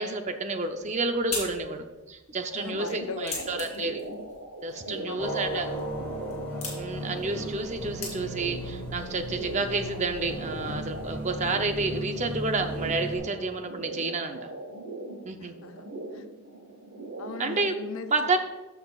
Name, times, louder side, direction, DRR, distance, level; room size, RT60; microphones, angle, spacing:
voice 1, 0.0-4.0 4.6-5.7 6.7-14.4 15.2-15.5 17.4-17.7 18.1-18.4, right 3 dB, 35° right, 7 dB, 0.6 m, -30 dB
sound 1, 0.6-8.6, left 3 dB, 30° left, 2.8 m, -42 dB
voice 2, 2.5-4.0 4.9-5.6 5.9-6.2 15.4-16.3 17.2-18.1, left 4 dB, 70° left, 9 dB, 0.6 m, -40 dB
sound 2, 2.5-17.4, right 2 dB, 65° right, 1.0 m, -41 dB
sound 3, 5.2-13.2, equal, 5° left, 2.9 m, -36 dB
14.5 x 5.7 x 2.4 m, 1.2 s
head